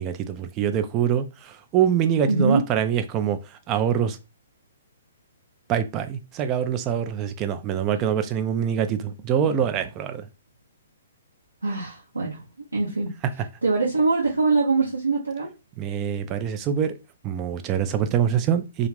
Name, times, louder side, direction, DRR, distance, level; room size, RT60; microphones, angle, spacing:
voice 1, 0.0-4.2 5.7-10.3 15.8-17.0 17.2-18.9, right 8 dB, 25° right, 0.3 m, -24 dB
voice 2, 2.3-2.6 11.6-12.4 12.7-13.1 13.6-15.5, right 3 dB, 85° right, 0.8 m, -23 dB
2.4 x 2.4 x 3.2 m
figure-of-eight pair, 125°, 0 cm